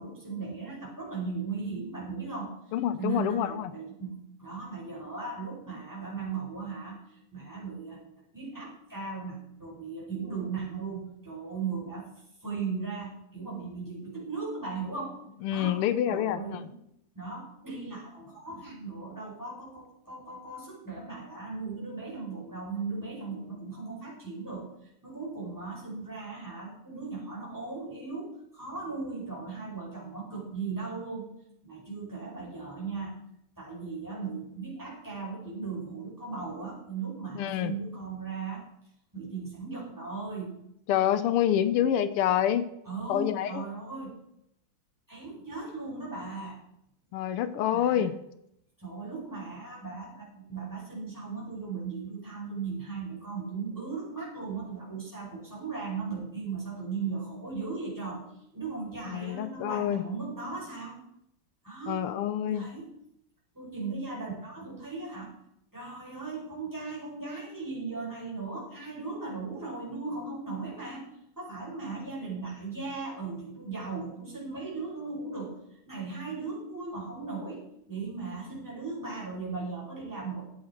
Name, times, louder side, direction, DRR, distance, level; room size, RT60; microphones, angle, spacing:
voice 1, 0.0-2.5 3.0-8.0 8.3-12.1 12.4-15.2 15.5-15.8 16.1-16.8 17.1-31.3 31.6-33.1 33.6-38.6 39.1-40.6 42.8-44.2 45.1-46.6 47.7-48.0 48.8-58.2 58.5-61.0 61.6-62.0 62.4-62.9 63.5-65.4 65.7-71.0 71.4-80.4, right 4 dB, 10° right, -5 dB, 4.7 m, -37 dB
voice 2, 2.7-3.7 15.4-16.7 37.4-37.7 40.9-42.7 43.1-43.6 47.1-48.1 59.1-60.0 61.9-62.7, left 10 dB, 90° left, 13 dB, 1.7 m, -27 dB
13.5 x 8.6 x 4.4 m, 0.77 s
omnidirectional pair, 2.4 m